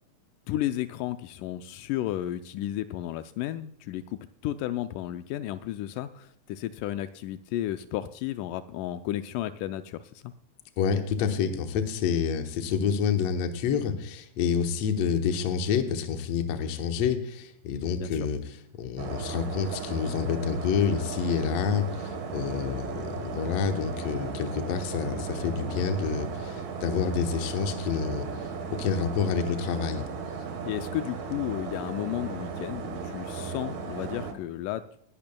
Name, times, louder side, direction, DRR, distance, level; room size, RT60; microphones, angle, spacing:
voice 1, 0.5-10.3 18.0-18.3 30.6-34.8, left 13 dB, 85° left, 11 dB, 1.8 m, -33 dB
voice 2, 10.8-30.0, left 7 dB, 65° left, 6 dB, 1.7 m, -28 dB
sound 1, 19.0-34.3, right 5 dB, 65° right, 2.8 m, -36 dB
19.5 x 11.0 x 2.2 m, 0.67 s
omnidirectional pair, 4.2 m